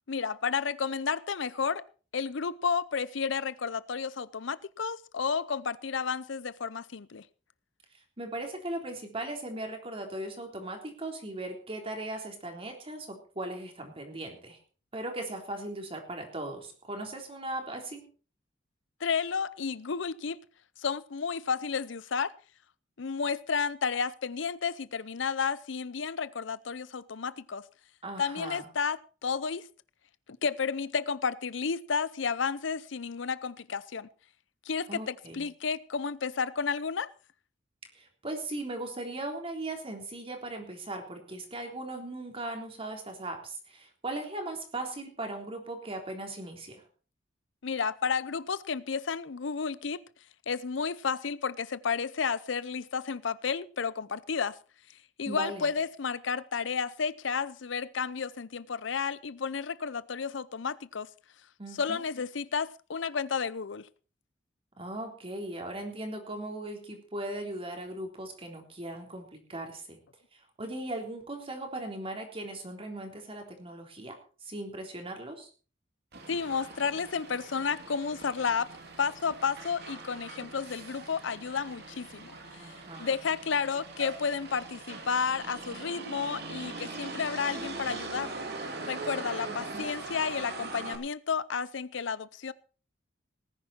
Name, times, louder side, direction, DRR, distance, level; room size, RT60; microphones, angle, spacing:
voice 1, 0.1-1.8 2.1-7.2 19.0-20.4 20.8-22.3 23.0-27.6 28.2-29.6 30.4-34.1 34.7-37.1 47.6-50.0 50.5-54.6 55.2-61.1 61.8-63.9 76.3-78.7 79.0-82.7 83.0-88.3 88.8-92.5, left 5 dB, 75° left, 18 dB, 0.7 m, -32 dB
voice 2, 8.2-14.6 14.9-18.0 28.0-28.7 34.9-35.5 38.0-46.8 55.3-55.7 61.6-62.0 64.8-70.0 70.6-74.2 74.4-75.5 82.6-83.1 89.5-89.9, right 1 dB, 30° right, 3 dB, 3.6 m, -38 dB
Motor vehicle (road), 76.1-91.0, right 3 dB, 60° right, 2.9 m, -41 dB
19.0 x 10.5 x 4.4 m, 0.38 s
head